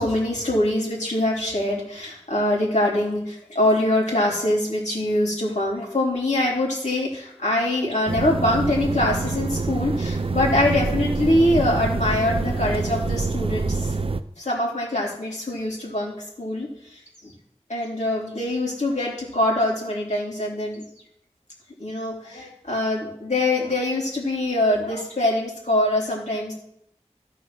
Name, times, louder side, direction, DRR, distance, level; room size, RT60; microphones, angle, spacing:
voice 1, 0.0-13.9 14.4-17.3 17.7-20.8 21.8-26.5, left 1 dB, 85° left, -4 dB, 3.7 m, -24 dB
sound 1, 8.1-14.2, right 3 dB, 50° right, 0.6 m, -26 dB
14.5 x 5.4 x 6.1 m, 0.73 s
wide cardioid pair, 50°, 12 cm